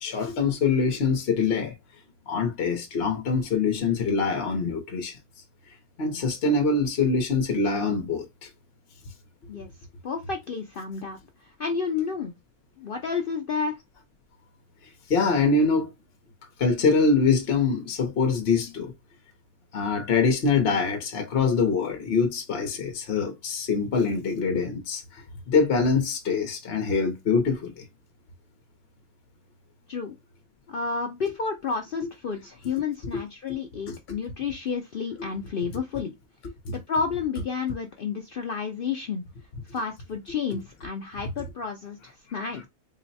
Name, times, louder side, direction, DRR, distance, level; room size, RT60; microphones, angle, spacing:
voice 1, 0.0-1.7 2.3-5.2 6.0-8.5 15.1-15.9 16.6-18.9 19.7-27.8 33.1-33.2 33.9-34.0 36.6-36.7, left 4 dB, 50° left, 0.9 m, -24 dB
voice 2, 10.0-12.3 12.8-13.8 29.9-30.2 30.7-36.1 36.7-39.2 39.7-42.7, left 5 dB, 70° left, 0.5 m, -31 dB
3.8 x 2.1 x 4.0 m
omnidirectional pair, 1.6 m